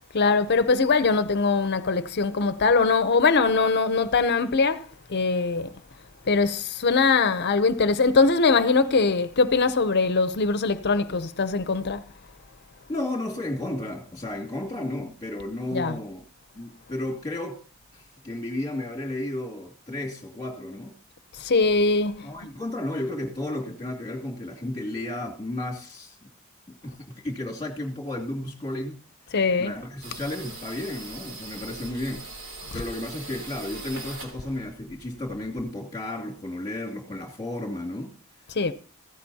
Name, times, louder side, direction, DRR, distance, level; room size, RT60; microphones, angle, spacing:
voice 1, 0.1-5.7 6.3-12.1 15.7-16.0 21.3-22.3 29.3-29.7 32.7-32.8 38.5-38.7, left 4 dB, 55° left, 0.7 m, -22 dB
voice 2, 12.9-16.2 16.5-17.6 17.9-20.9 22.2-26.3 26.8-29.0 29.6-32.3 32.7-38.1, left 1 dB, 20° left, 2.6 m, -33 dB
sound 1, 30.0-35.5, right 2 dB, 65° right, 3.3 m, -41 dB
15.5 x 15.5 x 2.8 m
head